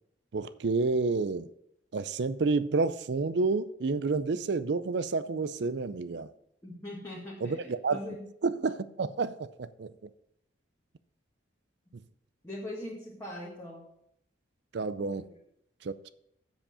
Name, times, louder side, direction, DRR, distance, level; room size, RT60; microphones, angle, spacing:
voice 1, 0.3-1.5 1.9-6.3 7.4-8.0 8.4-9.9 14.7-15.3 15.8-16.1, right 4 dB, 65° right, 0.5 m, -29 dB
voice 2, 6.6-8.3 12.4-13.8 15.3-15.4, left 1 dB, 15° left, 1.7 m, -41 dB
7.7 x 7.2 x 5.5 m
head